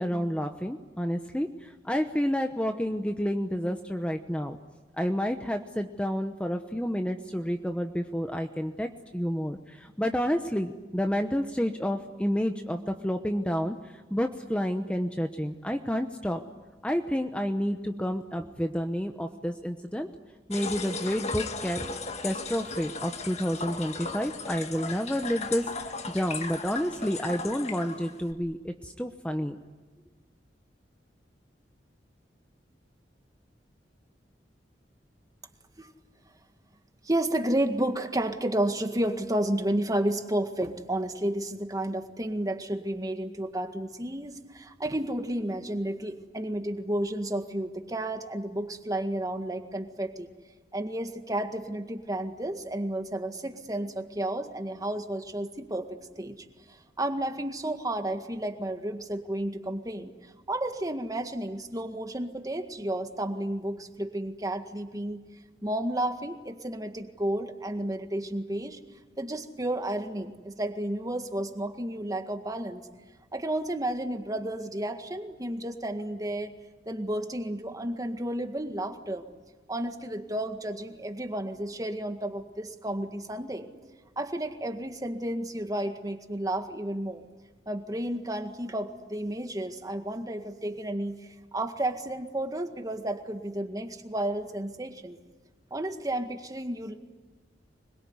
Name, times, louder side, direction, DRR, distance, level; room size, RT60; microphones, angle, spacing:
voice 1, 0.0-4.6 5.0-16.4 16.8-20.1 20.5-21.9 22.2-29.6, equal, 5° left, 5 dB, 1.0 m, -30 dB
sound 1, 20.5-28.3, left 4 dB, 40° left, 1.7 m, -37 dB
voice 2, 37.0-50.3 50.7-60.1 60.5-65.2 65.6-68.8 69.2-72.8 73.3-76.5 76.9-79.3 79.7-83.7 84.2-87.3 87.7-95.2 95.7-96.9, right 1 dB, 20° right, 6 dB, 1.9 m, -32 dB
25.0 x 22.0 x 9.7 m, 1.3 s
head